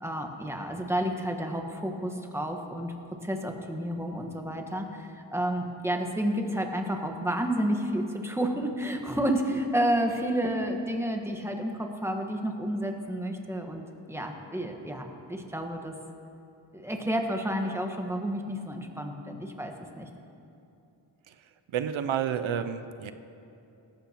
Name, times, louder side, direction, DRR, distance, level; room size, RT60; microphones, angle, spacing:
voice 1, 0.0-2.9 3.2-15.9 16.7-20.1, right 1 dB, 5° right, 3 dB, 1.4 m, -30 dB
voice 2, 21.7-23.1, right 8 dB, 90° right, 11 dB, 0.6 m, -30 dB
18.0 x 14.5 x 3.0 m, 2.8 s
wide cardioid pair, 70°, 46 cm